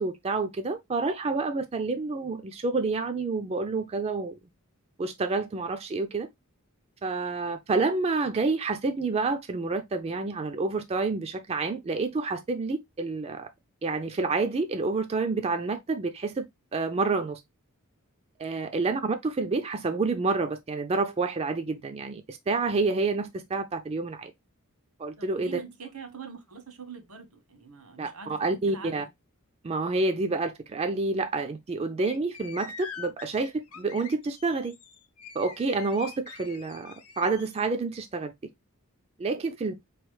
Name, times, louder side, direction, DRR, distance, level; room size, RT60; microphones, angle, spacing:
voice 1, 0.0-4.3 5.0-6.3 7.0-13.5 13.8-16.5 16.7-17.4 18.4-24.3 25.0-25.6 28.0-29.0 29.6-34.7 35.4-38.3 39.2-39.7, right 3 dB, 30° right, 0.4 m, -28 dB
voice 2, 25.2-29.1, right 5 dB, 85° right, 1.3 m, -44 dB
sound 1, 32.0-37.7, left 6 dB, 80° left, 0.8 m, -45 dB
4.1 x 3.1 x 3.1 m
head